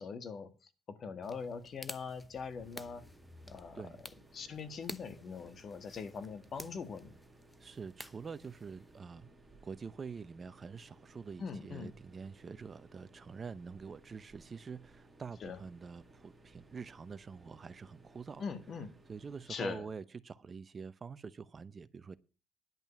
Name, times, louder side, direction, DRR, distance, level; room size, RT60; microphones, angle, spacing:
voice 1, 0.0-3.0 3.5-4.0 4.3-7.1 11.4-11.9 15.4-15.6 18.4-18.9 19.5-19.8, left 5 dB, 55° left, 1.7 m, -42 dB
sound 1, 1.2-9.0, left 1 dB, 10° left, 0.8 m, -52 dB
sound 2, 2.6-19.8, right 2 dB, 15° right, 2.3 m, -61 dB
voice 2, 7.6-9.3 9.6-18.4 19.1-22.2, right 5 dB, 40° right, 0.7 m, -46 dB
11.0 x 5.4 x 8.4 m
supercardioid pair, 75°, 0 cm